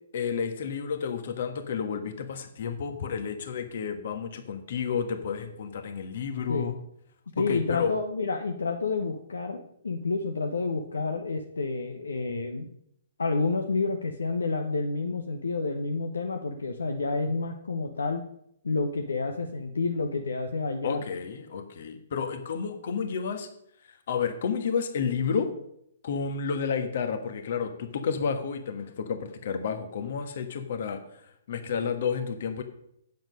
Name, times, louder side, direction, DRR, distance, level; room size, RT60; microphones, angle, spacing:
voice 1, 0.1-6.7 7.4-7.9 20.8-23.5 24.1-25.5 26.0-31.0 31.5-32.6, left 6 dB, 50° left, 7 dB, 1.5 m, -31 dB
voice 2, 7.4-12.7 13.2-18.2 18.6-21.0, left 3 dB, 70° left, 5 dB, 1.0 m, -29 dB
9.3 x 7.7 x 5.3 m, 0.73 s
figure-of-eight pair, 120°, 0 cm